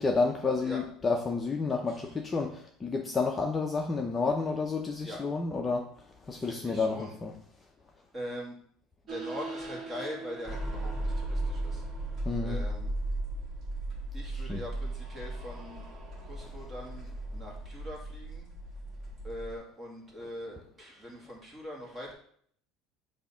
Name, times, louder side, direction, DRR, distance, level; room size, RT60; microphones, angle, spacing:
voice 1, 0.0-5.9 6.2-7.3 12.3-12.6 14.3-14.6, left 4 dB, 20° left, 2 dB, 0.6 m, -30 dB
voice 2, 1.9-2.2 5.0-5.2 6.4-7.2 8.1-8.6 9.0-11.8 12.4-12.9 14.1-15.9 16.2-18.5 19.2-22.1, equal, 15° right, -2 dB, 1.9 m, -42 dB
sound 1, 9.1-19.5, right 1 dB, 30° right, 1.8 m, -36 dB
6.8 x 2.8 x 5.6 m, 0.64 s
cardioid pair, 135°, 0 cm